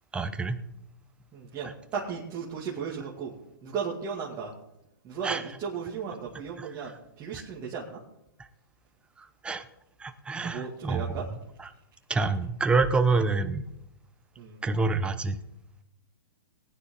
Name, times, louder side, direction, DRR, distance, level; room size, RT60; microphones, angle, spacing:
voice 1, 0.1-0.6 1.6-1.7 5.2-5.4 6.6-6.7 7.3-7.4 9.4-9.6 10.0-11.2 11.6-11.7 12.1-13.6 14.6-15.4, right 3 dB, 10° right, 8 dB, 0.9 m, -27 dB
voice 2, 1.3-3.4 3.6-4.5 5.0-8.0 10.4-11.2 14.4-14.6, right 6 dB, 25° right, -5 dB, 2.4 m, -35 dB
20.0 x 9.7 x 3.9 m, 0.85 s
hypercardioid pair, 140°, 12 cm